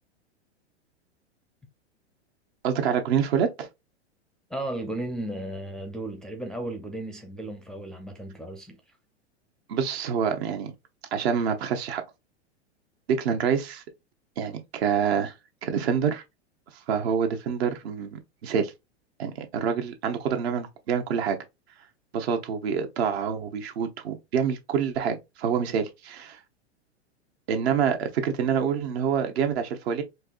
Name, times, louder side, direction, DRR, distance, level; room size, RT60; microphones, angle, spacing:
voice 1, 2.6-3.7 9.7-10.7 11.1-12.0 13.1-13.8 14.4-15.3 15.6-16.2 16.9-18.7 19.2-21.4 22.1-26.4 27.5-30.0, right 7 dB, 65° right, 1.0 m, -26 dB
voice 2, 4.5-8.8, right 1 dB, ahead, 0.5 m, -35 dB
4.5 x 2.7 x 2.4 m
hypercardioid pair, 105°, 34 cm